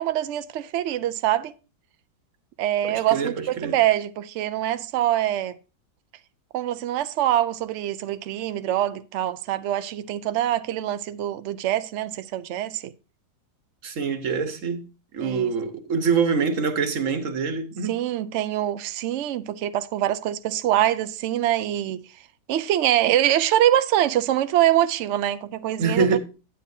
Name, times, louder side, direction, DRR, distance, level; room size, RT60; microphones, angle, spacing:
voice 1, 0.0-1.5 2.6-5.6 6.5-12.9 15.2-15.5 17.8-22.0 22.5-26.2, right 12 dB, 90° right, 0.6 m, -24 dB
voice 2, 2.8-3.7 13.8-14.8 15.1-18.0 25.8-26.2, right 5 dB, 55° right, 1.3 m, -25 dB
9.9 x 8.6 x 2.7 m
omnidirectional pair, 1.8 m